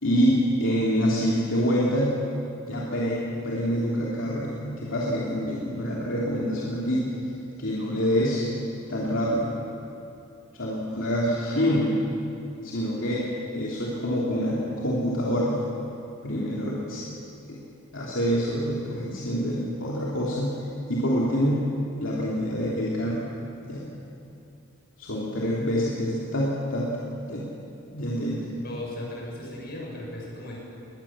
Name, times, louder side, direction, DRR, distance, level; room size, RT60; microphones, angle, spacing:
voice 1, 0.0-2.2 2.7-7.1 7.6-8.5 8.9-9.5 10.5-12.1 12.6-13.3 13.5-15.7 16.2-17.0 17.5-17.6 17.9-20.6 20.9-21.7 22.0-23.2 23.7-23.9 25.0-26.9 27.3-27.5 27.9-28.4, equal, 70° left, -5 dB, 3.0 m, -26 dB
voice 2, 28.6-30.6, left 1 dB, 50° left, -3 dB, 7.2 m, -36 dB
21.5 x 20.5 x 7.4 m, 2.8 s
head